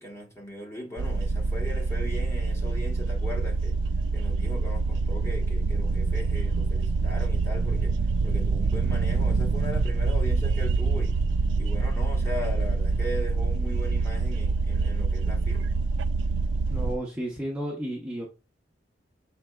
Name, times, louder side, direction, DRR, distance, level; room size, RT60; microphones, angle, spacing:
voice 1, 0.0-3.7 4.1-7.9 8.2-11.2 11.6-15.7, left 1 dB, 15° left, 1.2 m, -38 dB
sound 1, 1.0-17.0, right 3 dB, 80° right, 0.3 m, -26 dB
voice 2, 16.7-18.3, right 1 dB, 5° right, 0.8 m, -32 dB
6.1 x 3.8 x 2.3 m
head